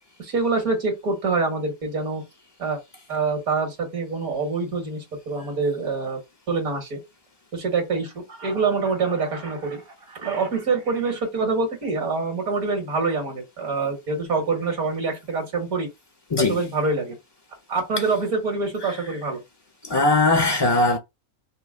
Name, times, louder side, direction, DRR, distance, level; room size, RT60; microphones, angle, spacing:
voice 1, 0.2-2.2 2.6-2.8 3.1-6.2 6.5-7.0 7.5-15.9 16.5-17.1 17.7-19.4, right 4 dB, 85° right, 2.1 m, -25 dB
voice 2, 16.3-16.6 18.8-18.9 19.8-21.0, left 2 dB, 40° left, 0.3 m, -20 dB
5.5 x 2.2 x 3.7 m
omnidirectional pair, 1.5 m